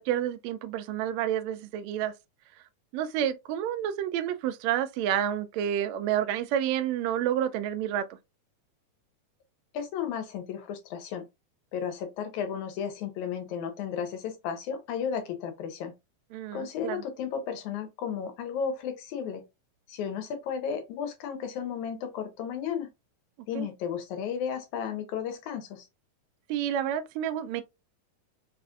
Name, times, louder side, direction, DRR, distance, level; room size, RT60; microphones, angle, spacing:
voice 1, 0.0-2.1 2.9-8.1 16.3-17.0 23.5-23.7 26.5-27.6, right 10 dB, 85° right, 1.6 m, -29 dB
voice 2, 9.7-11.3 11.7-15.9 16.5-19.4 19.9-22.9 23.5-25.9, left 7 dB, 80° left, 2.0 m, -34 dB
4.9 x 2.4 x 2.3 m
omnidirectional pair, 3.6 m